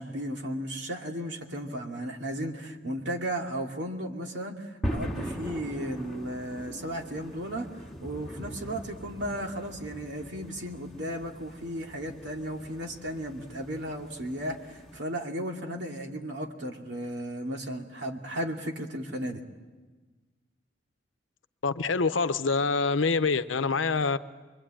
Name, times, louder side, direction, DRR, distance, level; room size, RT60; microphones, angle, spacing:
voice 1, 0.0-7.7 8.0-19.4, equal, 65° right, 2.6 m, -35 dB
sound 1, 4.8-15.0, equal, ahead, 2.5 m, -40 dB
voice 2, 21.6-24.2, left 4 dB, 85° left, 0.8 m, -26 dB
26.0 x 23.0 x 8.9 m
head